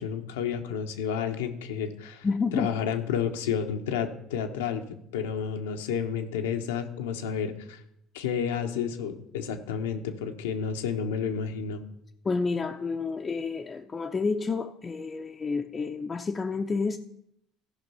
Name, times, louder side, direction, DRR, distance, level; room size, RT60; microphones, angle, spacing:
voice 1, 0.0-2.3 2.5-4.8 5.1-7.8 8.1-11.8, left 7 dB, 90° left, 1.0 m, -31 dB
voice 2, 2.2-2.7 12.2-17.0, left 4 dB, 30° left, 0.7 m, -29 dB
14.0 x 5.3 x 5.6 m
hypercardioid pair, 80°, 0 cm